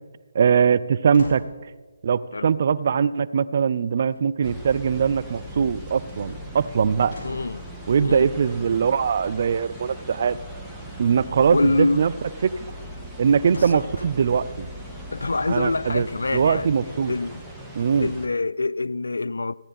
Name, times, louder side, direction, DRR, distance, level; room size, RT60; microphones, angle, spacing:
voice 1, 0.3-1.4 2.0-7.2 7.9-10.4 11.0-12.1 12.4-12.5 13.2-14.7 15.5-16.1 16.3-17.1 17.8-18.1, right 6 dB, 50° right, 0.4 m, -21 dB
sound 1, 1.1-1.6 4.1-4.8 5.8-6.2 7.1-7.6 11.1-11.6 13.5-14.0 14.7-14.8, left 1 dB, 35° left, 4.2 m, -41 dB
sound 2, 4.4-18.3, equal, ahead, 1.3 m, -39 dB
voice 2, 7.2-7.7 8.0-8.3 11.5-12.1 13.5-13.8 15.1-16.7 17.1-17.4 18.0-19.5, left 3 dB, 75° left, 0.3 m, -25 dB
15.5 x 9.9 x 4.2 m
figure-of-eight pair, 150°, 0 cm